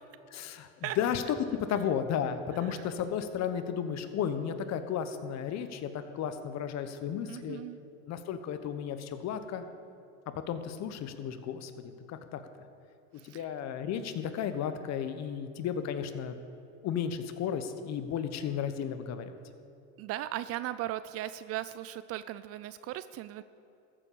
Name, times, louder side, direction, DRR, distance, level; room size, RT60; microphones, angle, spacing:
voice 1, 0.3-1.2 1.5-7.6 8.0-9.6 10.3-12.4 13.2-16.4 16.8-19.3, left 8 dB, 40° left, 9 dB, 1.1 m, -34 dB
voice 2, 7.3-7.8 13.2-13.5 20.0-23.4, right 14 dB, 40° right, 14 dB, 0.4 m, -37 dB
14.0 x 7.6 x 6.9 m, 2.8 s
hypercardioid pair, 100°, 39 cm